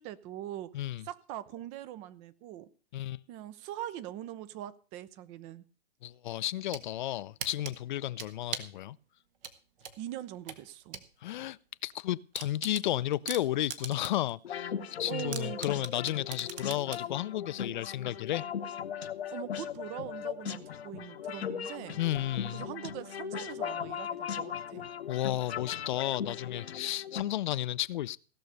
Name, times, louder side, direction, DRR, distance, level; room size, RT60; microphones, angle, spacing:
voice 1, 0.0-0.8 1.0-2.7 3.3-5.6 10.0-11.0 15.0-15.6 19.3-22.0 22.5-24.9, right 12 dB, 20° right, 0.5 m, -42 dB
voice 2, 0.7-1.0 2.9-3.2 6.0-9.0 11.2-14.7 15.0-18.4 22.0-22.7 25.1-28.2, left 13 dB, 50° left, 0.5 m, -33 dB
sound 1, 6.4-6.9 7.4-8.8 9.4-11.1 11.4-11.5 11.9-12.0 12.3-14.3 14.7-14.8 15.3-17.1, right 7 dB, 60° right, 1.5 m, -40 dB
sound 2, 14.4-27.2, left 8 dB, 75° left, 1.0 m, -38 dB
16.5 x 6.5 x 6.8 m
hypercardioid pair, 130°, 31 cm